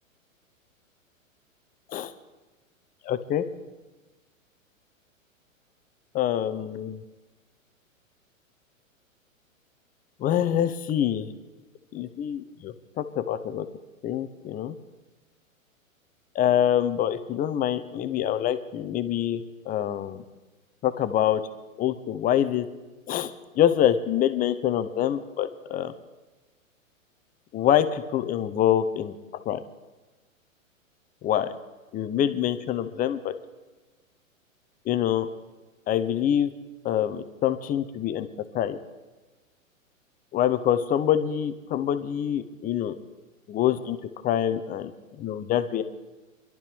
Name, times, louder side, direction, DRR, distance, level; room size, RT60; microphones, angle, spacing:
voice 1, 3.0-3.4 6.1-7.0 10.2-11.3 11.9-13.7 14.0-14.7 16.3-20.2 20.8-21.4 21.8-22.7 23.1-23.3 23.6-25.9 27.5-29.1 29.4-29.6 31.2-31.5 31.9-33.3 34.9-35.3 35.9-36.5 36.8-38.3 38.5-38.8 40.3-43.0 43.5-44.0 44.2-44.9 45.2-45.8, left 10 dB, 20° left, 11 dB, 0.8 m, -25 dB
24.5 x 12.0 x 3.5 m, 1.2 s
hypercardioid pair, 110°, 41 cm